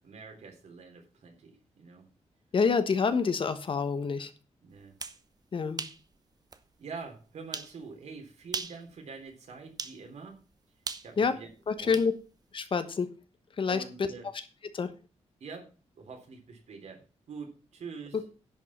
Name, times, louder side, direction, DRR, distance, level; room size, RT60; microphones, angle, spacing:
voice 1, 0.0-2.1 4.2-4.3 4.6-4.9 6.8-10.4 11.0-11.5 11.8-12.0 13.7-14.3 15.4-17.0 17.3-18.2, right 5 dB, 75° right, 3 dB, 3.6 m, -45 dB
voice 2, 2.5-4.3 5.5-5.8 11.2-11.3 11.7-12.1 12.5-13.1 13.6-13.8 14.7-14.9, left 5 dB, 45° left, 10 dB, 1.2 m, -27 dB
sound 1, 4.8-5.2 5.8-6.0 6.5-6.6 7.5-7.7 8.4-8.8 9.8-10.0 10.9-12.1, right 4 dB, 35° right, 0.9 m, -37 dB
10.5 x 5.7 x 7.2 m, 0.34 s
wide cardioid pair, 140°, 12 cm